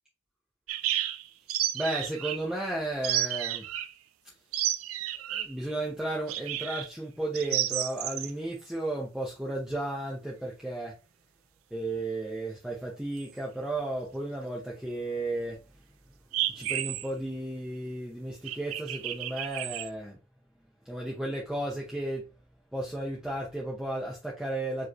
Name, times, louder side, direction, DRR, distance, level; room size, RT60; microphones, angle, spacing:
Evening Birdsong, 0.7-2.4 3.0-3.9 4.5-5.6 6.3-6.9 7.3-8.3 13.2-13.3 16.3-17.1 18.4-19.9, right 12 dB, 85° right, 0.4 m, -31 dB
voice 1, 1.7-3.7 5.3-10.9 11.7-15.6 16.4-20.2 20.8-22.2 22.7-24.9, right 1 dB, 5° right, -4 dB, 0.8 m, -34 dB
4.7 x 3.2 x 3.0 m, 0.29 s
head